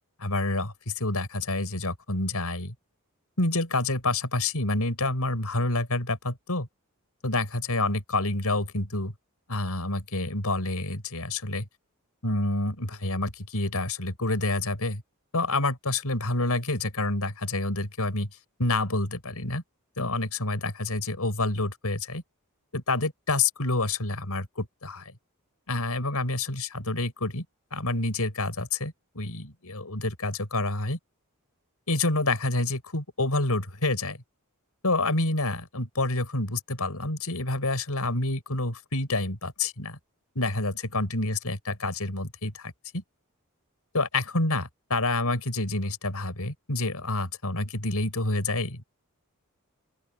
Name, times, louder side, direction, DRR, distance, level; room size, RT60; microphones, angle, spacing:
voice 1, 0.2-2.7 3.4-6.7 7.2-9.1 9.5-11.7 12.2-15.0 15.3-18.3 18.6-19.6 20.0-22.2 22.7-25.1 25.7-27.5 27.7-31.0 31.9-34.2 34.8-40.0 40.4-43.0 43.9-48.8, left 2 dB, 80° left, 5.3 m, -28 dB
open air
head